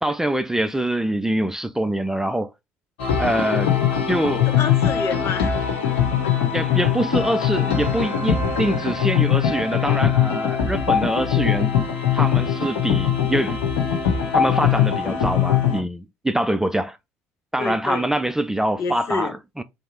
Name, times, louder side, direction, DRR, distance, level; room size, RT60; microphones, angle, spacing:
voice 1, 0.0-2.5 3.2-3.7 4.1-4.5 6.5-11.7 12.1-13.6 14.3-17.0 17.5-19.6, right 1 dB, 5° right, 0.4 m, -24 dB
sound 1, 3.0-15.8, left 8 dB, 80° left, 1.0 m, -21 dB
voice 2, 4.4-5.6 17.6-18.1 18.8-19.3, left 5 dB, 50° left, 1.0 m, -28 dB
3.3 x 2.8 x 3.9 m
hypercardioid pair, 60°, 6 cm